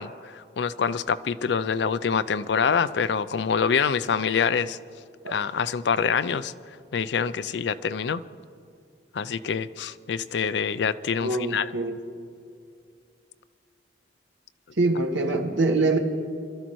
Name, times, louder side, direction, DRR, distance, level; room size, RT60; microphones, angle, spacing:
voice 1, 0.0-4.8 5.3-6.5 6.9-8.2 9.1-11.7, left 6 dB, 65° left, 15 dB, 0.4 m, -26 dB
voice 2, 11.2-12.0 14.8-16.0, right 2 dB, 90° right, 4 dB, 1.4 m, -24 dB
24.0 x 13.0 x 3.1 m, 2.4 s
head